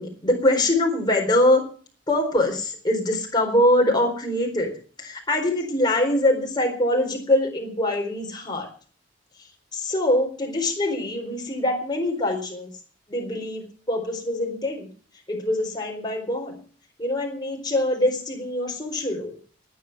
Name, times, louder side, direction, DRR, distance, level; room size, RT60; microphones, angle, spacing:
voice 1, 0.0-1.6 2.1-4.7 5.0-8.7 9.7-12.7 13.1-14.9 15.3-16.5 17.0-19.4, left 1 dB, 20° left, 1 dB, 4.2 m, -23 dB
19.5 x 9.3 x 6.0 m, 0.42 s
head